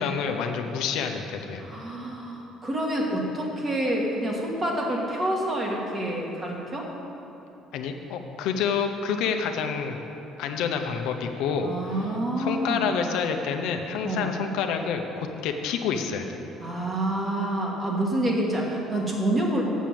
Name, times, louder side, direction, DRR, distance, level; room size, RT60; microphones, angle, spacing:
voice 1, 0.0-1.6 7.7-10.1 10.4-12.1 12.4-16.2, left 6 dB, 80° left, 5 dB, 0.7 m, -28 dB
voice 2, 1.6-6.9 11.6-12.9 14.0-14.3 16.6-19.6, right 1 dB, 30° right, -2 dB, 1.8 m, -27 dB
7.3 x 6.9 x 7.5 m, 2.9 s
cardioid pair, 115°, 0 cm